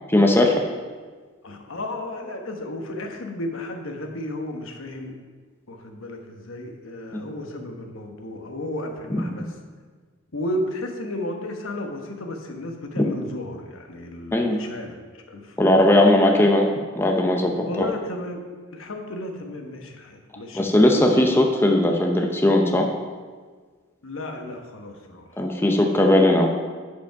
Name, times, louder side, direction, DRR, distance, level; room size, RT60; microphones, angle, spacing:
voice 1, 0.1-0.6 9.1-9.2 13.0-13.1 14.3-14.6 15.6-16.7 17.0-17.9 20.5-22.9 25.4-26.6, left 1 dB, 10° left, 1 dB, 0.6 m, -18 dB
voice 2, 1.4-5.2 5.7-9.5 10.3-14.9 15.3-15.9 17.5-20.7 24.0-25.3 25.6-25.8, left 1 dB, 70° left, 3 dB, 1.1 m, -33 dB
10.5 x 5.2 x 4.6 m, 1.5 s
head